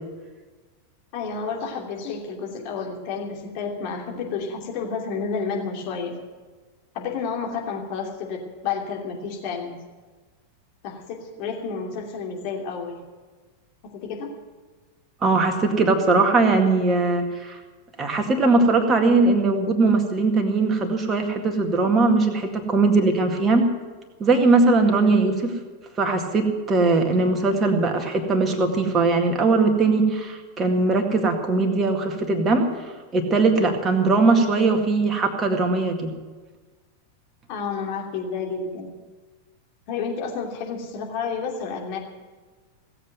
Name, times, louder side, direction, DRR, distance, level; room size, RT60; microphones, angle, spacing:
voice 1, 1.1-6.2 6.9-9.7 10.8-13.0 13.8-14.4 24.8-25.2 37.5-38.9 39.9-42.0, left 5 dB, 45° left, 0 dB, 2.8 m, -30 dB
voice 2, 15.2-17.6 18.0-23.7 24.2-25.5 26.0-32.7 33.1-36.2, right 3 dB, 25° right, 4 dB, 2.0 m, -20 dB
17.0 x 8.0 x 9.2 m, 1.4 s
figure-of-eight pair, 90°, 0 cm